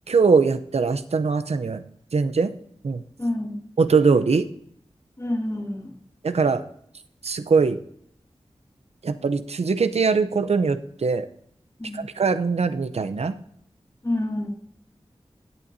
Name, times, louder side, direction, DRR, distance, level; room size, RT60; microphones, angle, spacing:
voice 1, 0.1-1.8 2.1-2.5 2.8-3.0 3.8-4.5 6.2-6.6 7.2-7.8 9.0-11.3 11.9-13.3, right 4 dB, 75° right, 11 dB, 0.6 m, -21 dB
voice 2, 3.2-3.6 5.2-6.0 11.8-12.0 14.0-14.5, left 1 dB, 30° left, 1 dB, 2.2 m, -28 dB
16.0 x 8.6 x 2.7 m, 0.68 s
wide cardioid pair, 50°, 11 cm